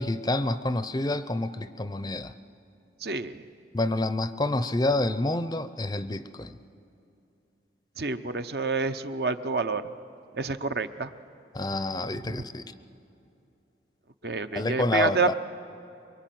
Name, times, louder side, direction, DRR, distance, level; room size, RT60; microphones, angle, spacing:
voice 1, 0.0-2.3 3.7-6.5 11.5-12.6 14.5-15.3, left 2 dB, 20° left, 12 dB, 0.5 m, -28 dB
voice 2, 3.0-3.4 8.0-9.9 10.3-11.1 12.2-12.4 14.2-15.3, right 4 dB, 60° right, 10 dB, 0.8 m, -28 dB
24.0 x 23.0 x 9.3 m, 2.7 s
head